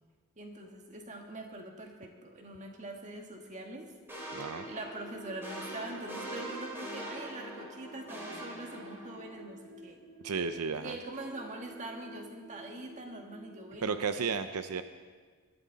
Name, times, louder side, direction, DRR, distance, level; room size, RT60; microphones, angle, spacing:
voice 1, 0.4-3.9 4.6-10.0 10.7-14.3, right 2 dB, 35° right, 2 dB, 1.8 m, -43 dB
sound 1, 4.1-9.4, right 1 dB, 10° right, 3.2 m, -43 dB
sound 2, 4.2-13.7, right 1 dB, 10° left, 2.9 m, -51 dB
voice 2, 4.3-4.7 10.2-11.0 13.8-14.8, right 5 dB, 90° right, 10 dB, 0.6 m, -33 dB
20.5 x 13.0 x 4.0 m, 1.5 s
head